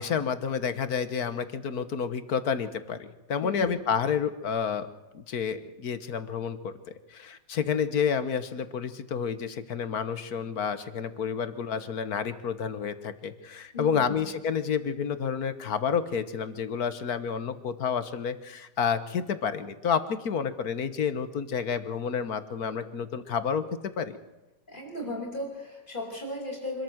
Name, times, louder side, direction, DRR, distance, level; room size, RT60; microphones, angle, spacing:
voice 1, 0.0-4.9 5.1-6.8 7.1-24.2, left 7 dB, 60° left, 12 dB, 1.6 m, -30 dB
voice 2, 3.4-3.7 13.7-14.2 24.7-26.8, left 1 dB, 25° left, -1 dB, 6.2 m, -36 dB
25.5 x 13.5 x 7.9 m, 1.0 s
omnidirectional pair, 1.9 m